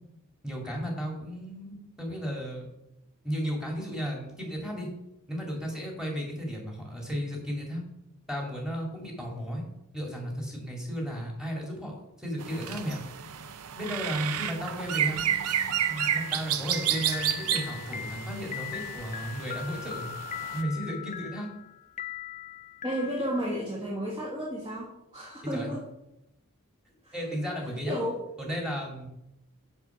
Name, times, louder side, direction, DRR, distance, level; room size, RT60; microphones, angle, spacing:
voice 1, 0.4-2.7 3.2-4.9 5.3-7.8 8.3-9.6 9.9-13.0 13.8-15.2 15.9-20.1 20.5-21.5 25.5-25.7 27.1-28.0 28.4-29.1, equal, 5° right, -1 dB, 2.3 m, -34 dB
sound 1, 12.4-20.6, right 10 dB, 80° right, 0.6 m, -31 dB
sound 2, 15.7-23.6, left 10 dB, 30° left, 0.5 m, -40 dB
voice 2, 22.8-25.8 27.0-27.1 27.8-28.2, equal, 20° right, -3 dB, 1.6 m, -32 dB
7.0 x 5.4 x 7.0 m, 0.86 s
head